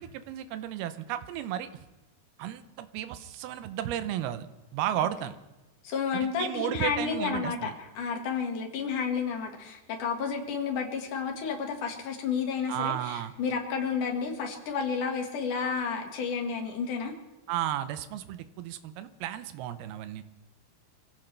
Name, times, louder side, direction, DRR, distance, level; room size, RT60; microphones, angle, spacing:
voice 1, 0.0-1.7 2.4-4.5 4.7-5.4 6.1-7.7 12.7-13.3 17.5-20.2, right 11 dB, 75° right, 11 dB, 2.4 m, -33 dB
voice 2, 5.8-7.7 8.0-17.1, left 6 dB, 55° left, 2 dB, 2.9 m, -31 dB
26.0 x 16.0 x 3.3 m, 1.0 s
omnidirectional pair, 5.0 m